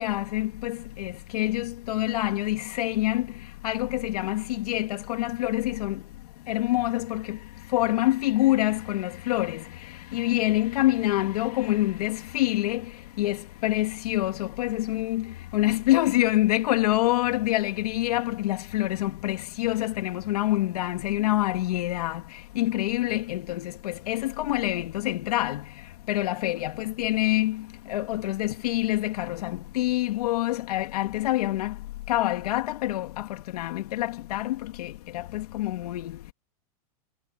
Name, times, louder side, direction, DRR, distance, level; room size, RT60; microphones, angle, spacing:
voice 1, 0.0-3.3 3.6-6.0 6.5-7.4 7.7-9.6 10.1-12.8 13.2-22.2 22.6-25.6 26.1-31.7 32.1-33.3 33.5-36.2, left 16 dB, 80° left, 2.3 m, -26 dB
supercardioid pair, 140°, 19 cm